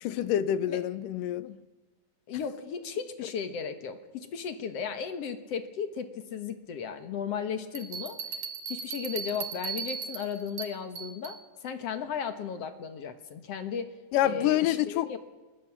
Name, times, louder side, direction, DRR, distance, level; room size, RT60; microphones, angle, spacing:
voice 1, 0.0-1.6 14.1-15.2, left 12 dB, 85° left, 2.5 m, -27 dB
voice 2, 2.3-8.2 8.7-11.4 11.6-13.9 14.2-15.2, left 7 dB, 55° left, 2.1 m, -35 dB
sound 1, 7.7-11.4, right 6 dB, 70° right, 3.1 m, -37 dB
28.5 x 21.5 x 6.1 m
omnidirectional pair, 3.8 m